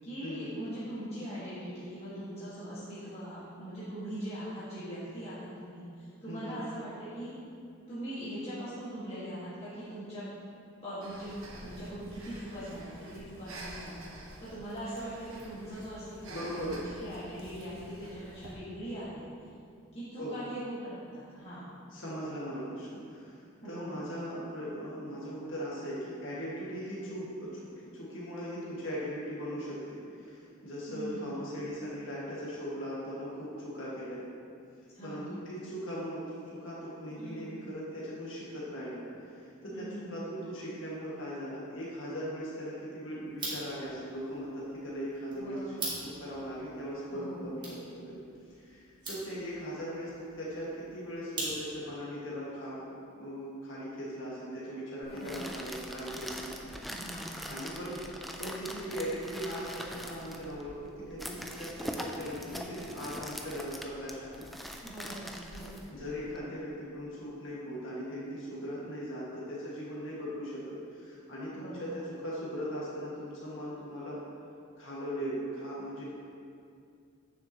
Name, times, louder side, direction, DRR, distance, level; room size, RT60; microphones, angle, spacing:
voice 1, 0.0-7.3 7.9-10.3 10.8-11.3 11.6-14.0 14.4-19.2 19.9-21.8 23.6-24.0 30.9-31.3 34.9-35.3 37.2-37.6 39.7-40.3 45.3-45.8 47.1-47.5 55.1-55.5 56.8-57.6 64.8-65.8 66.3-66.5 71.5-72.0, right 1 dB, 30° left, -12 dB, 1.7 m, -41 dB
voice 2, 6.3-6.6 16.3-16.8 20.2-20.4 21.9-27.7 27.9-34.2 35.0-45.6 46.0-48.2 48.6-52.8 53.2-56.7 57.5-58.0 58.4-64.4 65.6-74.2 74.8-76.0, equal, 65° left, -8 dB, 1.8 m, -39 dB
Breathing, 11.0-18.5, right 1 dB, 80° right, 1.3 m, -48 dB
sound 1, 43.3-52.0, right 2 dB, 20° right, 1.7 m, -43 dB
sound 2, 55.0-66.4, equal, ahead, 0.4 m, -42 dB
9.3 x 6.9 x 2.9 m, 2.4 s
head